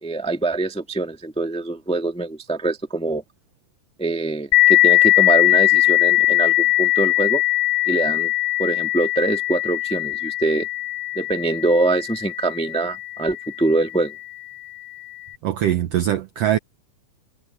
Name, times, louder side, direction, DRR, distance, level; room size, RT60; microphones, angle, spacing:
voice 1, 0.0-3.2 4.0-7.4 7.9-8.3 8.6-10.7 11.1-14.1, right 2 dB, 5° left, 0.9 m, -24 dB
sound 1, 4.5-13.8, left 16 dB, 90° left, 2.5 m, -20 dB
voice 2, 15.4-16.6, right 11 dB, 90° right, 1.4 m, -21 dB
omnidirectional pair, 3.9 m